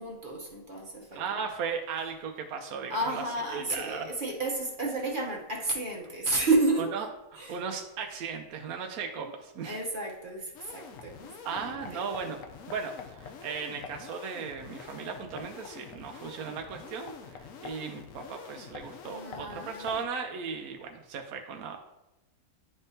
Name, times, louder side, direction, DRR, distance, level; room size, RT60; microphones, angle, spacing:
voice 1, 0.0-1.4 2.9-6.9 7.4-7.6 9.6-12.0 19.1-19.9, right 2 dB, 40° right, -1 dB, 0.9 m, -31 dB
voice 2, 1.1-3.2 3.5-4.1 6.8-9.8 11.4-12.4 12.7-21.8, right 6 dB, 80° right, 3 dB, 1.1 m, -37 dB
sound 1, 10.5-20.1, left 6 dB, 70° left, 1.0 m, -46 dB
10.5 x 3.6 x 2.7 m, 1.0 s
omnidirectional pair, 1.5 m